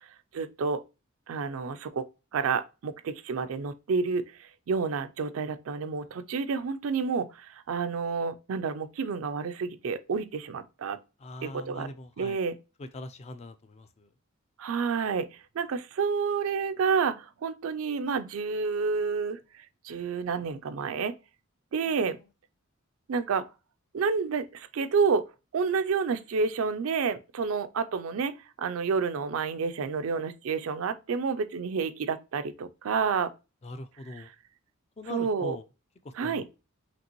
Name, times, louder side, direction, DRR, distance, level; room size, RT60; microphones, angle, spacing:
voice 1, 0.3-0.8 1.3-2.0 2.3-11.0 11.4-11.9 12.2-12.5 14.6-15.3 15.5-19.4 19.8-21.1 21.7-22.2 23.1-23.4 23.9-25.3 25.5-28.3 28.6-33.3 34.2-34.3 35.1-35.6 36.2-36.4, right 5 dB, 70° right, 0.4 m, -29 dB
voice 2, 11.2-12.4 12.8-14.1 21.9-22.0 33.6-34.3 35.0-35.6 36.0-36.4, left 2 dB, 30° left, 0.4 m, -42 dB
5.2 x 2.9 x 2.9 m
head